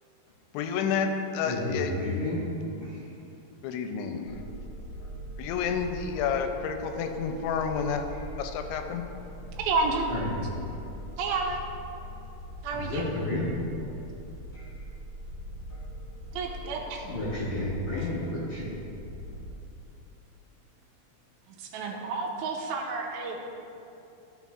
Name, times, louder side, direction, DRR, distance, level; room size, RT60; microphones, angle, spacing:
voice 1, 0.5-1.9 3.6-4.3 5.4-8.1 8.4-9.0, left 6 dB, 90° left, 6 dB, 2.9 m, -30 dB
voice 2, 1.4-3.1 10.1-10.5 12.7-13.5 17.0-18.8, left 1 dB, 65° left, -10 dB, 1.9 m, -31 dB
sound 1, 4.3-19.5, equal, 50° left, 1.4 m, -42 dB
voice 3, 9.6-10.1 11.2-11.6 12.6-13.0 16.3-17.0 21.6-23.4, right 4 dB, 85° right, 1 dB, 2.7 m, -30 dB
13.5 x 5.9 x 2.4 m, 2.8 s
omnidirectional pair, 5.1 m